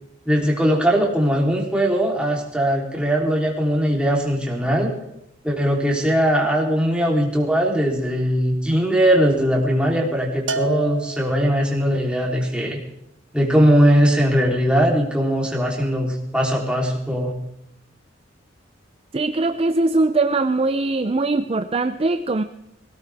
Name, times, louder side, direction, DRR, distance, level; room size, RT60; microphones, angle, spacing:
voice 1, 0.2-4.9 5.4-12.8 13.3-17.4, equal, 5° right, -2 dB, 3.4 m, -20 dB
Bell, 10.5-11.8, right 4 dB, 85° right, 1.0 m, -29 dB
voice 2, 19.1-22.4, right 2 dB, 30° right, 9 dB, 0.5 m, -21 dB
20.5 x 17.5 x 3.5 m, 0.80 s
head